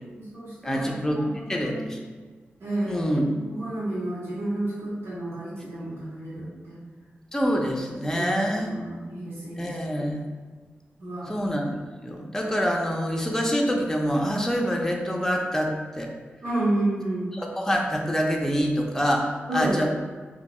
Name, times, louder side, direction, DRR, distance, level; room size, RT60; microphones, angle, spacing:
voice 1, 0.1-1.9 2.6-3.1 3.3-6.8 8.1-10.0 11.0-11.5 16.4-17.3 19.5-19.9, right 1 dB, 85° right, -11 dB, 1.4 m, -31 dB
voice 2, 0.6-1.2 1.5-2.0 2.9-3.2 7.3-8.7 9.6-10.2 11.3-16.1 17.3-19.9, equal, 10° left, 0 dB, 0.6 m, -26 dB
3.4 x 2.7 x 4.1 m, 1.5 s
cardioid pair, 85°, 4 cm